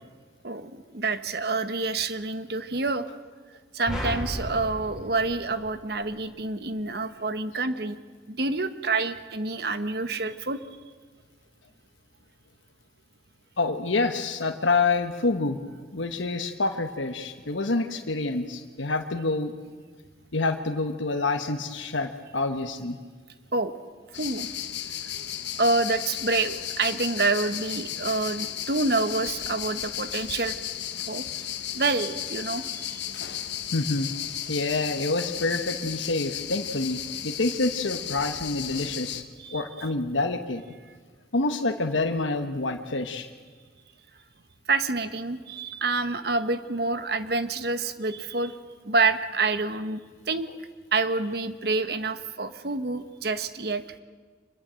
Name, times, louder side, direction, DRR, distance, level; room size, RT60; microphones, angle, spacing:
voice 1, 0.4-3.0 3.7-10.6 23.5-23.7 24.1-24.5 25.6-30.6 31.1-31.2 31.7-33.0 39.4-39.6 44.7-48.5 48.8-50.0 50.3-50.5 50.9-53.8, right 3 dB, 55° right, 11 dB, 1.2 m, -27 dB
sound 1, 3.9-6.3, equal, 5° right, 7.1 m, -34 dB
voice 2, 13.6-15.6 15.9-19.5 20.3-23.0 33.7-39.2 39.5-40.6 41.3-43.3, left 3 dB, 85° left, 5 dB, 1.2 m, -27 dB
sound 2, 24.1-39.2, left 10 dB, 70° left, 1.4 m, -34 dB
25.5 x 21.5 x 7.6 m, 1.5 s
head